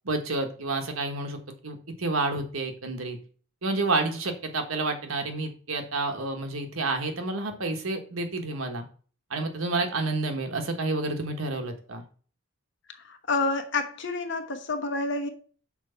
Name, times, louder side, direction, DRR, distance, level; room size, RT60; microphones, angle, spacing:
voice 1, 0.0-3.2 3.6-8.8 9.3-12.0, right 3 dB, 75° right, 1.4 m, -29 dB
voice 2, 12.9-15.3, left 3 dB, 60° left, 1.1 m, -29 dB
6.1 x 4.6 x 5.7 m
head